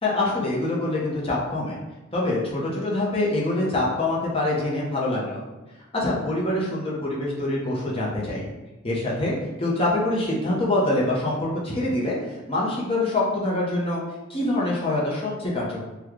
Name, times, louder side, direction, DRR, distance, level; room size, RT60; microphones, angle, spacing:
voice 1, 0.0-1.8 2.1-5.4 5.9-8.5 8.8-12.2 12.5-14.0 14.3-15.8, left 2 dB, 25° left, -4 dB, 0.7 m, -25 dB
3.1 x 2.2 x 3.6 m, 1.1 s
head